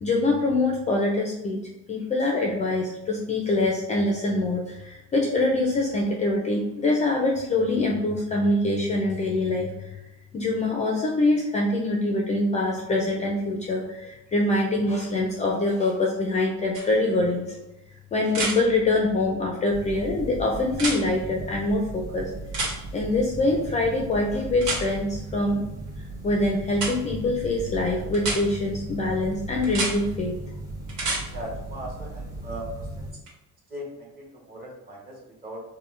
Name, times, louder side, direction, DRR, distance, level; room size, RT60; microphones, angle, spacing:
voice 1, 0.0-10.0 10.3-17.4 18.1-22.3 22.9-25.6 26.2-30.3, left 2 dB, 25° left, 0 dB, 0.3 m, -24 dB
sound 1, 16.7-16.8 18.3-18.6 20.7-21.0 22.5-22.7 24.6-24.8 26.7-26.9 28.1-28.4 29.6-29.9 30.9-31.2 33.3-33.4, right 3 dB, 75° right, 1.4 m, -27 dB
sound 2, 19.7-33.1, right 2 dB, 10° right, 0.7 m, -37 dB
voice 2, 31.3-33.1 33.7-35.6, equal, 30° right, -3 dB, 1.1 m, -39 dB
5.1 x 2.1 x 3.1 m, 0.96 s
cardioid pair, 170°, 30 cm